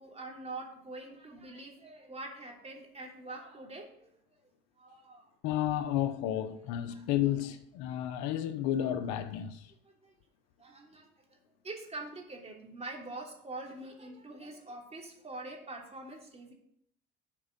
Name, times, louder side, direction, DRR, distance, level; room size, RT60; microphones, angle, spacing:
voice 1, 0.0-4.1 4.8-5.3 6.9-7.4 8.4-8.5 9.8-10.1 10.6-11.4 11.6-16.5, right 2 dB, 20° right, 3.0 m, -45 dB
voice 2, 5.4-9.6, left 11 dB, 75° left, 0.9 m, -32 dB
12.0 x 5.4 x 5.2 m
supercardioid pair, 85°, 29 cm